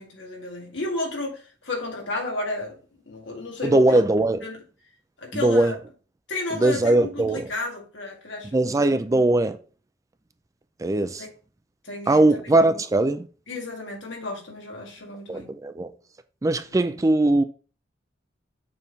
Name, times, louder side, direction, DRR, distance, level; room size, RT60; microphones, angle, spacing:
voice 1, 0.0-2.8 3.1-4.0 4.4-4.6 5.2-5.7 6.3-8.7 11.8-12.2 13.5-15.5, left 2 dB, 75° left, 2.0 m, -32 dB
voice 2, 3.6-4.4 5.3-5.7 6.5-7.4 8.5-9.6 10.8-11.2 12.1-13.3 15.3-15.9 16.4-17.4, right 2 dB, 15° right, 0.4 m, -20 dB
6.8 x 3.6 x 4.0 m
head